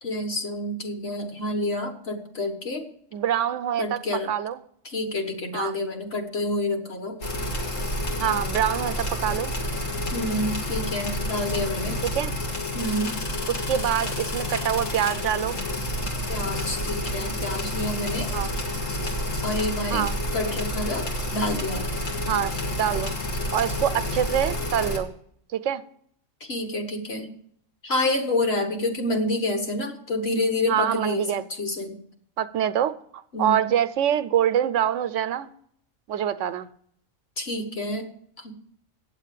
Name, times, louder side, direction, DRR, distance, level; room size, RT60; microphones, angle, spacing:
voice 1, 0.0-2.9 3.8-4.3 4.8-7.2 10.1-12.0 12.7-13.2 16.3-18.3 19.4-20.1 20.3-21.1 21.3-21.9 26.4-27.3 27.8-32.0 33.3-33.7 37.4-38.1 38.4-38.5, left 1 dB, 55° left, 1.7 m, -28 dB
voice 2, 3.1-4.0 4.3-4.6 5.5-5.7 8.2-9.5 12.1-12.3 13.5-15.6 18.3-18.5 19.9-20.2 22.3-22.5 22.8-23.2 23.5-25.1 25.5-25.8 30.7-31.4 32.4-35.5 36.1-36.7, right 10 dB, 75° right, 0.9 m, -25 dB
sound 1, 7.2-25.0, left 1 dB, 80° left, 2.2 m, -29 dB
9.1 x 7.4 x 7.5 m
omnidirectional pair, 1.3 m